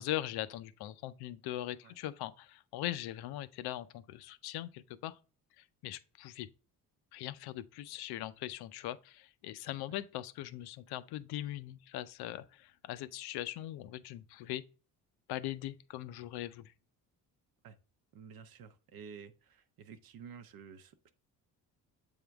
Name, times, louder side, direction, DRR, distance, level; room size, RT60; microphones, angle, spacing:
voice 1, 0.0-5.2 5.6-6.5 7.1-14.7 15.3-16.7, left 14 dB, 85° left, 0.6 m, -40 dB
voice 2, 18.1-21.1, right 6 dB, 65° right, 0.7 m, -51 dB
7.8 x 3.6 x 3.4 m
cardioid pair, 115°, 38 cm